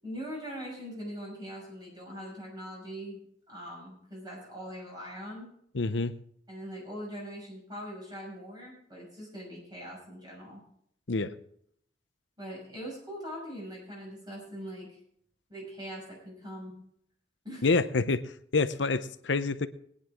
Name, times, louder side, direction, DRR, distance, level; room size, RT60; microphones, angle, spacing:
voice 1, 0.0-3.2 3.5-5.5 6.5-10.6 12.4-15.0 15.5-16.7 17.4-17.7 17.9-18.0, equal, 25° right, -3 dB, 6.4 m, -42 dB
voice 2, 5.7-6.1 11.1-11.3 17.6-18.2 18.5-19.7, left 3 dB, 80° left, 12 dB, 0.8 m, -27 dB
20.5 x 10.0 x 3.7 m, 0.67 s
head